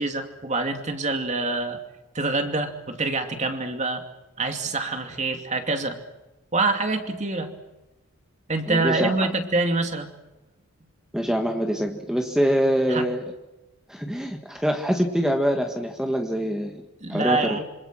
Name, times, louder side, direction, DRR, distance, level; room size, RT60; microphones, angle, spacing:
voice 1, 0.0-1.8 2.1-4.0 4.4-6.0 6.5-7.6 8.5-10.1 12.9-13.1 17.0-17.6, right 3 dB, 30° right, 5 dB, 2.6 m, -26 dB
voice 2, 8.7-9.1 11.1-13.2 13.9-16.8 17.1-17.6, equal, 5° right, 4 dB, 1.7 m, -24 dB
27.0 x 26.5 x 6.3 m, 1.0 s
head